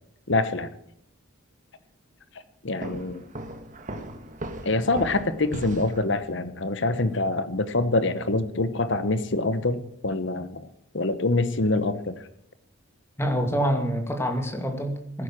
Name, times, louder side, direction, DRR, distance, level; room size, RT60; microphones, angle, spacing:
voice 1, 0.3-0.7 2.6-3.3 4.6-10.6 10.9-12.1, left 2 dB, 55° left, 13 dB, 1.0 m, -25 dB
Walk footsteps, 2.8-6.1, right 1 dB, 35° right, 1.5 m, -38 dB
voice 2, 13.2-15.2, equal, 10° left, 5 dB, 2.2 m, -26 dB
16.0 x 10.0 x 7.6 m, 0.73 s
head